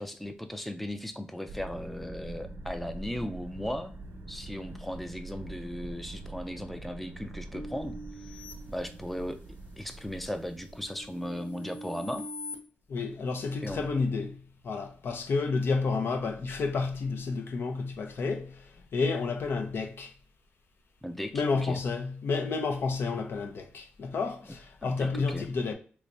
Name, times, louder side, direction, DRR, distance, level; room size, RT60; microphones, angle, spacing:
voice 1, 0.0-3.9 4.3-8.0 8.7-9.4 9.8-12.2 13.6-13.9 21.0-21.8 24.8-25.5, equal, 5° left, 0.4 m, -37 dB
sound 1, 1.5-11.4, right 2 dB, 70° right, 0.5 m, -44 dB
sound 2, 7.5-9.5 10.0-12.6, equal, 60° left, 1.1 m, -44 dB
voice 2, 12.9-14.4 14.6-18.5 18.9-20.1 21.3-25.7, left 4 dB, 75° left, 0.6 m, -30 dB
3.3 x 3.1 x 2.5 m
cardioid pair, 75°, 4 cm